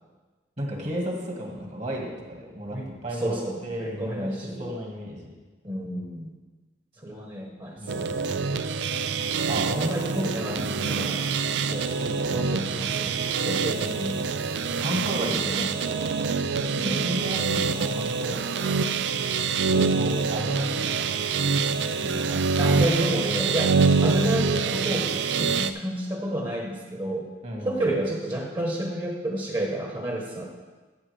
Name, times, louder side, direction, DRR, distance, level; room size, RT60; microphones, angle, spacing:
voice 1, 0.6-5.3 7.8-8.1 9.5-10.0 10.6-10.9 14.8-15.5 16.7-18.8 19.9-21.1 21.6-22.5 27.4-27.8, equal, 40° right, 0 dB, 1.9 m, -34 dB
voice 2, 3.2-4.7 5.6-6.3 7.0-8.1 9.7-10.6 10.9-11.3 11.6-14.2 15.2-15.7 16.7-17.0 19.7-20.0 22.6-25.1 25.3-27.3 27.6-30.5, right 1 dB, 25° right, 0 dB, 1.3 m, -30 dB
sound 1, 7.9-25.7, right 5 dB, 70° right, 0.4 m, -25 dB
14.0 x 7.3 x 3.5 m, 1.3 s
head